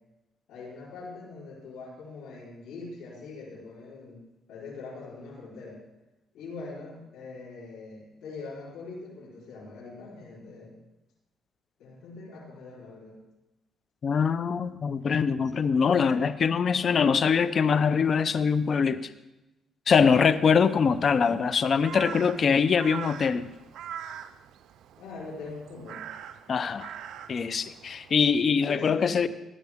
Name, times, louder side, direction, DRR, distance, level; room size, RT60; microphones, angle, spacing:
voice 1, 0.5-4.2 4.5-5.8 6.3-10.8 11.8-13.2 25.0-26.0 28.6-29.2, left 3 dB, 85° left, -6 dB, 4.2 m, -42 dB
voice 2, 14.0-19.1 19.9-23.5 26.5-26.9 27.3-29.3, left 6 dB, 50° left, 14 dB, 0.6 m, -23 dB
Crow, 19.9-28.4, right 8 dB, 80° right, 0.5 m, -44 dB
15.0 x 10.5 x 3.6 m, 1.0 s
cardioid pair, 90°, 0 cm